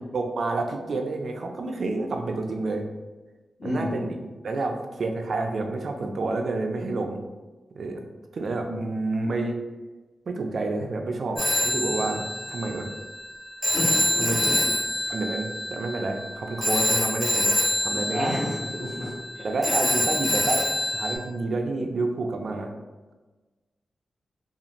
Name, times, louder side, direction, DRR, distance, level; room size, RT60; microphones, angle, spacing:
voice 1, 0.1-2.8 3.6-7.2 7.8-8.0 8.3-9.6 10.3-12.9 14.2-14.7 15.1-17.5 17.8-18.4 19.4-20.7 20.9-22.7, right 3 dB, 55° right, 3 dB, 0.3 m, -29 dB
voice 2, 3.6-4.0 8.6-8.8 13.7-14.6 18.1-19.4, equal, 60° left, -16 dB, 1.4 m, -31 dB
Telephone, 11.4-21.1, left 1 dB, 35° left, 0.8 m, -26 dB
2.5 x 2.4 x 2.9 m, 1.2 s
wide cardioid pair, 125°, 0 cm